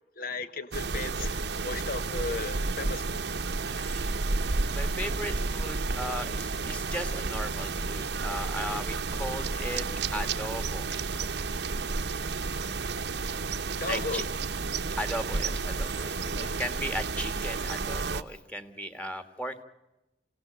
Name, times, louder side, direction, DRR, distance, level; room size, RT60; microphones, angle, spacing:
voice 1, 0.2-3.2 13.8-14.2 16.3-16.5, left 3 dB, 55° left, 1.0 m, -35 dB
sound 1, 0.7-18.2, right 3 dB, 75° right, 0.9 m, -31 dB
voice 2, 3.7-4.1 4.7-9.9 10.1-10.9 13.9-14.2 15.0-19.6, equal, 10° left, 1.6 m, -37 dB
28.0 x 17.0 x 8.6 m
head